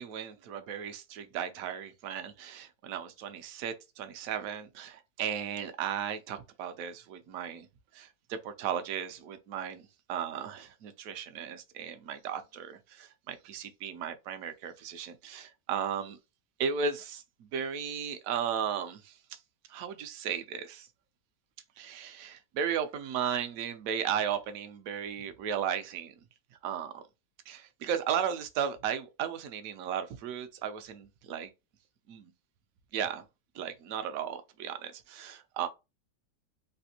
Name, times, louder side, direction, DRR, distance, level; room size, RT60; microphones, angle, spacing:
voice 1, 0.0-7.7 7.9-16.2 16.6-19.4 19.7-20.9 21.8-26.1 26.6-27.0 27.5-31.5 32.1-32.3 32.9-33.2 33.5-35.7, right 8 dB, 70° right, 0.9 m, -35 dB
3.3 x 2.5 x 2.7 m
omnidirectional pair, 1.7 m